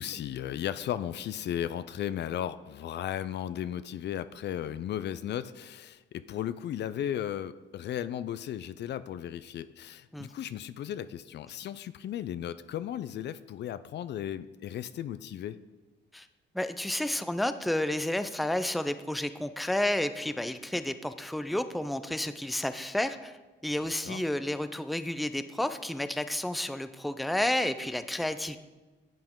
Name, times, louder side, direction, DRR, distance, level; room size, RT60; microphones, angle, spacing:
voice 1, 0.0-15.6 24.0-24.2, left 10 dB, 60° left, 14 dB, 0.4 m, -35 dB
voice 2, 16.5-23.4 23.6-28.6, left 1 dB, ahead, 11 dB, 0.4 m, -31 dB
10.5 x 7.7 x 3.7 m, 1.2 s
cardioid pair, 90°, 20 cm